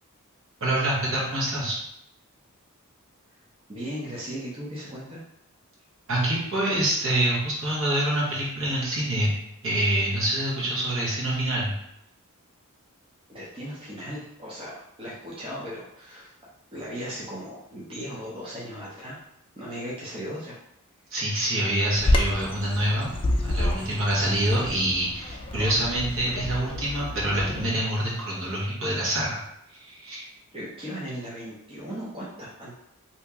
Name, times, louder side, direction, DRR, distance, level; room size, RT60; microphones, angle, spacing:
voice 1, 0.6-1.8 6.1-9.3 9.6-11.7 21.1-23.1 23.4-29.4 29.7-30.3, right 1 dB, 60° right, -5 dB, 1.2 m, -26 dB
voice 2, 3.7-5.2 13.3-16.3 16.7-19.2 19.6-20.6 30.5-32.7, equal, 25° right, -7 dB, 0.7 m, -37 dB
Bird vocalization bird call bird song, 22.0-27.7, left 1 dB, 25° left, 0.4 m, -29 dB
2.9 x 2.8 x 3.5 m, 0.80 s
head